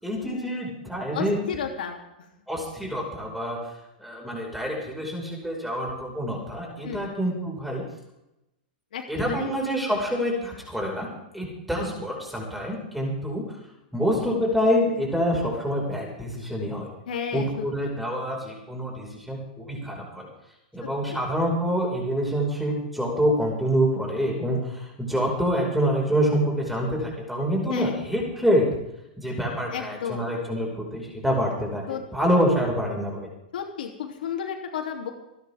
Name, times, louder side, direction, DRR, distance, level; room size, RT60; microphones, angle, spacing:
voice 1, 0.0-1.4 2.5-3.6 4.0-7.8 9.1-11.1 11.3-13.6 13.9-16.9 17.3-20.3 20.7-28.7 29.2-31.8 32.1-33.3, equal, ahead, -2 dB, 5.2 m, -26 dB
voice 2, 1.1-2.0 6.8-7.1 8.9-9.6 10.0-10.5 17.0-17.9 20.8-21.2 27.7-28.0 29.7-30.4 31.9-32.3 33.5-35.1, left 7 dB, 80° left, 2 dB, 3.1 m, -34 dB
27.5 x 10.5 x 3.6 m, 0.90 s
hypercardioid pair, 140°, 5 cm